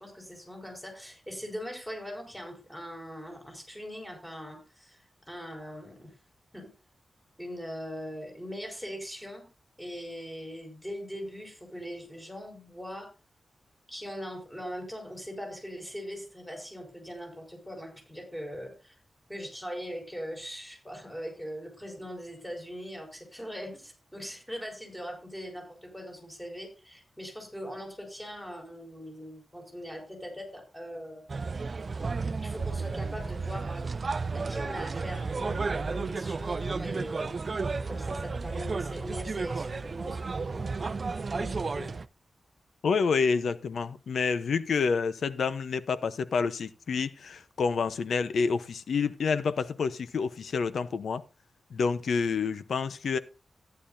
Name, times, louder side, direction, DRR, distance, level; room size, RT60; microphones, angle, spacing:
voice 1, 0.0-5.0 5.3-6.1 6.5-6.7 7.4-9.5 9.8-13.1 13.9-19.0 19.3-31.2 32.4-33.9 34.3-37.3 37.9-41.0 41.3-42.0, equal, 5° left, 5.4 m, -41 dB
sound 1, 31.3-42.0, right 4 dB, 45° right, 0.5 m, -33 dB
voice 2, 42.8-51.2 51.7-53.2, left 5 dB, 80° left, 0.9 m, -28 dB
14.0 x 10.5 x 2.7 m
wide cardioid pair, 120°, 0 cm